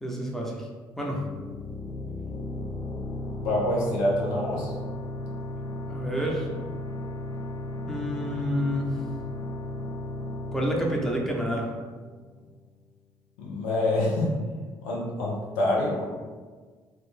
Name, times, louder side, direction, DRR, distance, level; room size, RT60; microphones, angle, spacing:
voice 1, 0.0-0.7 1.0-1.2 5.9-6.5 7.9-9.0 10.5-11.7, equal, 5° left, -1 dB, 0.8 m, -29 dB
sound 1, 1.1-12.5, left 1 dB, 35° left, 0.5 m, -35 dB
voice 2, 3.4-4.7 13.4-14.3 14.8-16.1, left 1 dB, 70° left, -4 dB, 0.7 m, -26 dB
3.0 x 2.5 x 3.3 m, 1.5 s
figure-of-eight pair, 45°, 11 cm